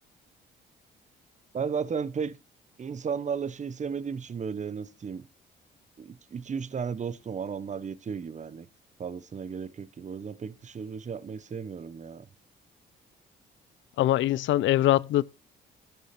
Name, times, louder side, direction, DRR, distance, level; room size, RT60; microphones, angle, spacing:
voice 1, 1.5-2.4 2.8-5.3 6.0-8.7 9.0-12.3, right 6 dB, 35° right, 0.9 m, -34 dB
voice 2, 14.0-15.2, left 14 dB, 75° left, 0.5 m, -23 dB
13.0 x 8.3 x 4.3 m
cardioid pair, 90°, 20 cm